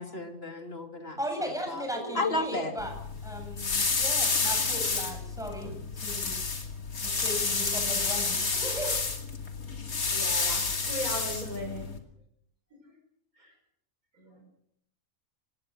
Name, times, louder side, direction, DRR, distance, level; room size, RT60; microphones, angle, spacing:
voice 1, 0.0-1.8 2.1-2.7, left 2 dB, 40° left, 5 dB, 3.0 m, -33 dB
voice 2, 1.2-3.0 3.2-6.4 7.0-9.0, equal, ahead, 3 dB, 7.9 m, -37 dB
sound 1, 2.8-12.0, left 4 dB, 70° left, 3.1 m, -30 dB
voice 3, 10.1-11.9 13.4-13.5 14.2-14.4, equal, 70° right, 1 dB, 6.5 m, -38 dB
25.0 x 19.5 x 6.5 m, 0.71 s
omnidirectional pair, 1.6 m